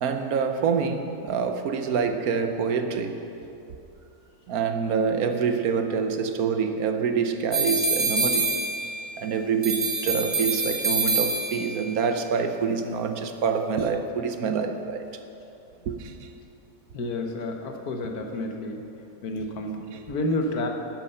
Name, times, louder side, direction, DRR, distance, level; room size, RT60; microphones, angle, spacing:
voice 1, 0.0-3.2 4.5-8.5 9.2-15.0 15.9-16.1 19.9-20.0, right 6 dB, 70° right, 7 dB, 1.2 m, -26 dB
sound 1, 7.5-9.2 9.6-11.8, right 3 dB, 25° right, 1.5 m, -26 dB
voice 2, 16.9-18.8 19.2-19.8 20.1-20.7, left 2 dB, 70° left, 3 dB, 1.6 m, -29 dB
12.0 x 9.2 x 5.6 m, 2.8 s
omnidirectional pair, 1.7 m